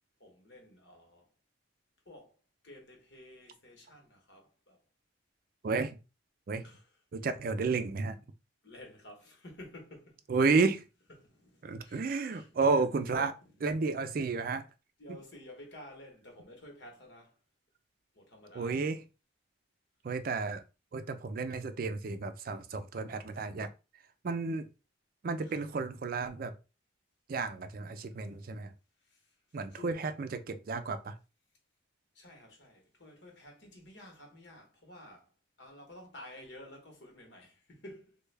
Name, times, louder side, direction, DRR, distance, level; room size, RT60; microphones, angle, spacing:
voice 1, 0.2-1.3 2.0-4.8 6.6-7.0 8.6-10.3 11.2-13.5 15.0-17.4 18.1-18.9 25.4-25.8 28.1-28.2 29.0-30.0 32.1-35.3 35.6-38.2, left 1 dB, 75° left, 1.1 m, -52 dB
voice 2, 5.6-6.0 6.5-6.6 7.1-8.2 10.3-10.8 11.6-13.3 13.6-14.6 18.6-19.0 20.0-20.6 20.9-23.7 24.2-24.6 25.2-26.5 27.3-28.7 29.5-31.1, right 4 dB, 50° right, 0.4 m, -32 dB
3.3 x 2.2 x 3.3 m
head